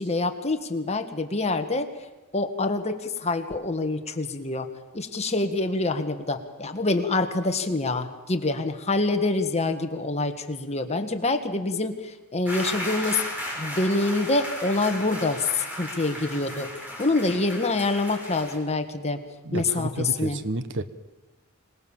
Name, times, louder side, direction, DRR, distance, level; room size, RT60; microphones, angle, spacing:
voice 1, 0.0-1.9 2.3-4.7 4.9-13.2 13.6-16.7 17.0-19.2 19.5-20.4, left 2 dB, 30° left, 6 dB, 1.8 m, -26 dB
sound 1, 12.5-18.6, left 1 dB, 10° right, 6.2 m, -35 dB
voice 2, 19.5-20.8, right 2 dB, 55° right, 12 dB, 1.3 m, -30 dB
26.0 x 19.5 x 7.4 m, 1.1 s
head